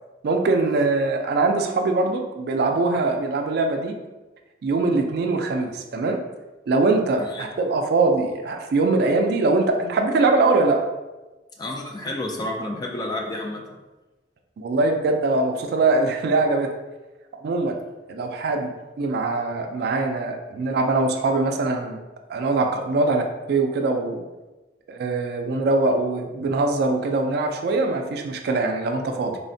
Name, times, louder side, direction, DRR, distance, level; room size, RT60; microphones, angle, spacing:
voice 1, 0.2-3.9 4.6-6.2 6.7-10.8 14.6-16.8 17.4-17.8 18.1-22.0 22.3-24.2 24.9-29.4, right 3 dB, 60° right, 4 dB, 0.3 m, -22 dB
voice 2, 11.6-13.6, left 1 dB, 25° left, 1 dB, 0.3 m, -30 dB
3.3 x 2.0 x 2.6 m, 1.1 s
head